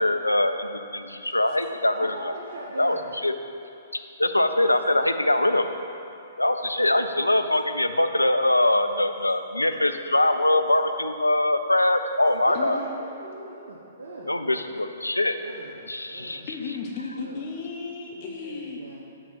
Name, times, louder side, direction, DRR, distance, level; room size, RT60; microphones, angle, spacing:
voice 1, 0.0-2.3 2.8-3.0 3.2-3.4 4.2-5.7 6.4-12.8 14.3-15.4 15.9-16.5, left 1 dB, 85° left, 8 dB, 0.4 m, -23 dB
voice 2, 2.0-3.1 12.5-14.7 15.3-16.5 17.2-17.5 18.1-19.0, right 2 dB, 60° right, -4 dB, 0.7 m, -40 dB
voice 3, 12.5-12.9 16.5-18.8, left 4 dB, 35° left, 0 dB, 0.7 m, -34 dB
6.0 x 4.9 x 5.6 m, 2.7 s
figure-of-eight pair, 115°, 0 cm